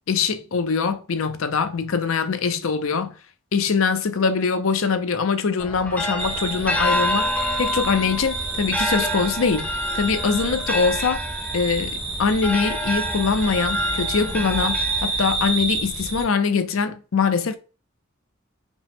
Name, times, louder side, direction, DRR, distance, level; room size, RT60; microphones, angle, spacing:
voice 1, 0.1-3.1 3.5-7.3 7.6-9.7 9.9-11.2 11.5-17.6, left 5 dB, 75° left, 0.6 m, -23 dB
sound 1, 5.6-15.5, equal, 5° left, 0.5 m, -28 dB
sound 2, 6.2-16.2, right 3 dB, 25° right, 1.1 m, -29 dB
5.1 x 2.1 x 3.4 m
head